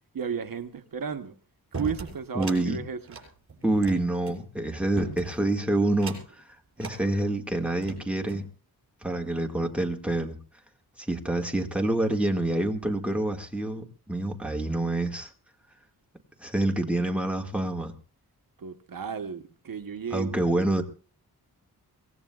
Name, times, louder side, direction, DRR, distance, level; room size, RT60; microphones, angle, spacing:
voice 1, 0.1-1.3 1.7-3.2 18.6-20.5, right 6 dB, 60° right, 1.0 m, -34 dB
sound 1, 1.7-2.6 3.0-4.4 5.0-5.5 5.9-6.4 6.8-7.0 7.6-8.5, right 4 dB, 35° right, 6.6 m, -38 dB
voice 2, 2.4-2.8 3.6-6.2 6.8-8.4 9.0-10.4 11.0-15.3 16.4-17.9 20.1-20.8, right 1 dB, 5° right, 1.8 m, -27 dB
24.0 x 18.5 x 2.3 m
wide cardioid pair, 130°, 39 cm